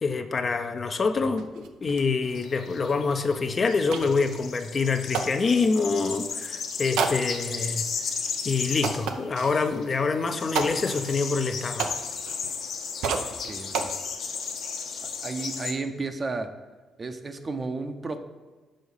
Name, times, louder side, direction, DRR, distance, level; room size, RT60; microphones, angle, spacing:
voice 1, 0.0-7.9 8.4-11.9, left 4 dB, 40° left, 7 dB, 0.6 m, -26 dB
sound 1, 0.8-0.9 1.1-5.8 6.9-7.6 8.2-8.3 8.8-9.8 10.5-12.7 13.0-13.9, right 6 dB, 90° right, 0.6 m, -33 dB
sound 2, 2.2-15.7, left 5 dB, 70° left, 1.2 m, -35 dB
voice 2, 13.4-13.9 15.2-16.5 17.0-18.2, right 3 dB, 35° right, 7 dB, 0.7 m, -32 dB
6.4 x 5.3 x 5.4 m, 1.3 s
cardioid pair, 90°, 0 cm